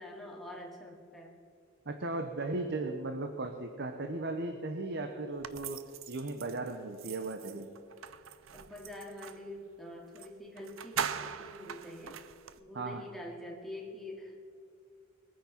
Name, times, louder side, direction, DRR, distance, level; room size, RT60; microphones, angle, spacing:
voice 1, 0.0-1.3 8.5-12.2 12.6-14.5, left 1 dB, ahead, -1 dB, 2.3 m, -45 dB
voice 2, 1.9-7.7 12.7-13.0, right 2 dB, 55° right, 6 dB, 1.0 m, -36 dB
sound 1, 5.4-9.5 10.2-10.3 10.6-12.6, right 7 dB, 90° right, 0.6 m, -41 dB
21.0 x 9.4 x 5.9 m, 2.4 s
head